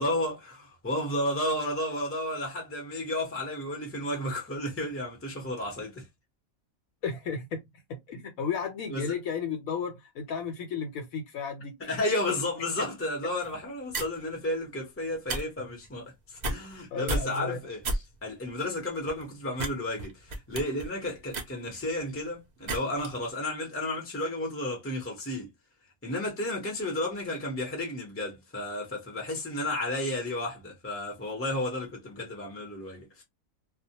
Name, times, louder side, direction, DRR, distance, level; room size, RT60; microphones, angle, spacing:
voice 1, 0.0-6.0 8.9-9.0 11.8-25.5 26.0-33.2, left 1 dB, 15° left, 0.6 m, -32 dB
voice 2, 7.0-7.6 7.9-11.7 16.9-17.6, left 6 dB, 80° left, 1.0 m, -33 dB
Digging with shovel, 13.4-13.6 13.9-14.2 15.1-15.4 15.7-15.9 16.4-16.8 17.1-17.4 17.8-18.0 18.4-18.5 19.1-19.2 19.5-19.7 20.0-22.1 22.7-23.1, right 2 dB, 85° right, 0.3 m, -32 dB
2.2 x 2.1 x 2.7 m
omnidirectional pair, 1.5 m